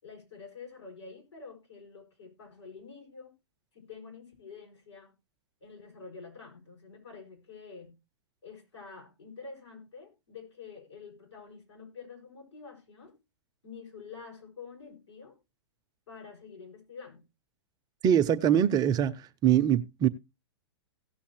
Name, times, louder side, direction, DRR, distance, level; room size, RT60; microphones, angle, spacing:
voice 1, 0.0-3.3 3.7-5.1 5.6-8.0 8.4-13.1 13.6-15.3 16.1-17.3, left 5 dB, 85° left, 6.7 m, -48 dB
voice 2, 18.0-20.1, right 10 dB, 25° right, 0.7 m, -23 dB
17.5 x 7.0 x 3.1 m
hypercardioid pair, 110°, 14 cm